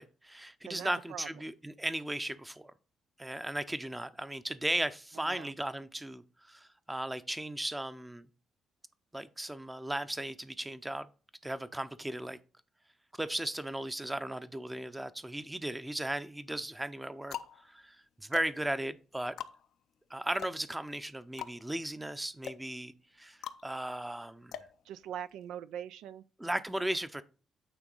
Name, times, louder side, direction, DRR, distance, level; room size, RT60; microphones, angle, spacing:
voice 1, 0.0-2.7 3.2-8.3 9.1-11.1 11.4-12.4 13.2-17.4 17.6-19.3 20.1-24.6 26.4-27.2, right 1 dB, 10° right, 0.6 m, -36 dB
voice 2, 0.7-1.3 5.2-5.5 24.8-26.2, right 10 dB, 90° right, 0.3 m, -42 dB
sound 1, 15.4-16.1 16.7-25.5, left 10 dB, 75° left, 0.5 m, -46 dB
9.0 x 3.5 x 3.9 m
cardioid pair, 90°, 0 cm